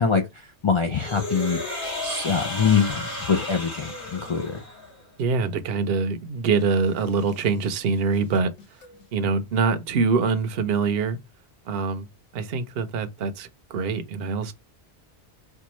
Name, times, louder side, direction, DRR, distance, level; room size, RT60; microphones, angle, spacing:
voice 1, 0.0-1.6 2.0-4.6, left 6 dB, 45° left, 0.4 m, -24 dB
sound 1, 0.9-5.0, left 1 dB, 70° left, 2.4 m, -33 dB
voice 2, 5.2-8.5 9.1-11.2 11.7-12.1 12.3-14.5, right 4 dB, 60° right, 0.8 m, -24 dB
sound 2, 6.5-9.1, left 2 dB, 85° left, 1.8 m, -51 dB
4.5 x 2.3 x 3.0 m
omnidirectional pair, 1.2 m